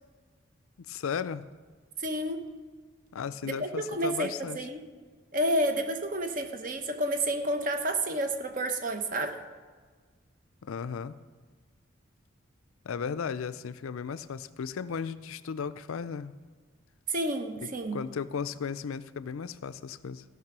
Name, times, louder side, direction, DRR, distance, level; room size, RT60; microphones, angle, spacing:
voice 1, 0.9-1.4 3.1-4.6 10.6-11.2 12.8-16.3 17.9-20.2, left 6 dB, 85° left, 15 dB, 0.4 m, -35 dB
voice 2, 2.0-2.4 3.4-4.8 5.3-9.4 17.1-18.0, right 1 dB, 40° right, 6 dB, 0.9 m, -30 dB
15.0 x 6.0 x 6.1 m, 1.5 s
head